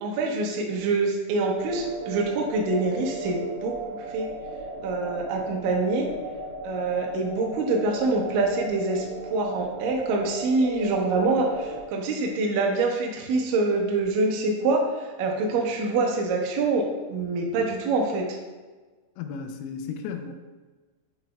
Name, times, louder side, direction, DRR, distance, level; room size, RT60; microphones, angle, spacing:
voice 1, 0.0-3.8 4.1-4.3 4.8-6.1 6.6-9.0 9.3-18.4, right 3 dB, 90° right, 0 dB, 1.9 m, -25 dB
sound 1, 1.5-11.8, right 2 dB, 70° right, 1.7 m, -36 dB
voice 2, 19.2-20.3, left 6 dB, 85° left, 6 dB, 2.8 m, -34 dB
11.0 x 4.0 x 2.3 m, 1.3 s
omnidirectional pair, 5.3 m